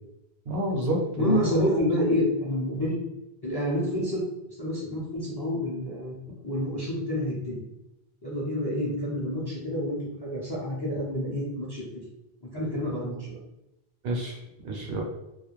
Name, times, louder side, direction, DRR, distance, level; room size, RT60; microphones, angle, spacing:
voice 1, 0.5-1.8 14.0-15.0, equal, 75° right, -1 dB, 0.9 m, -29 dB
voice 2, 1.2-3.0 3.4-4.2 4.6-6.2 6.4-7.6 8.2-11.8 12.5-13.4, left 1 dB, 30° left, -6 dB, 0.5 m, -28 dB
2.4 x 2.2 x 3.0 m, 0.92 s
omnidirectional pair, 1.0 m